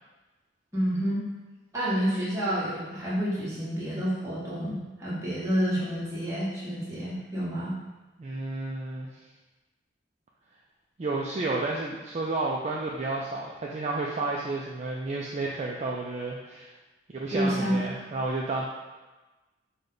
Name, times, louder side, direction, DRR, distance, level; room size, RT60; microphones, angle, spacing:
voice 1, 0.7-1.2 1.7-7.7 17.3-18.0, equal, 15° right, -8 dB, 1.1 m, -29 dB
voice 2, 8.2-9.1 11.0-16.7 17.2-18.7, right 2 dB, 35° right, -3 dB, 0.3 m, -31 dB
5.1 x 2.2 x 3.8 m, 1.2 s
head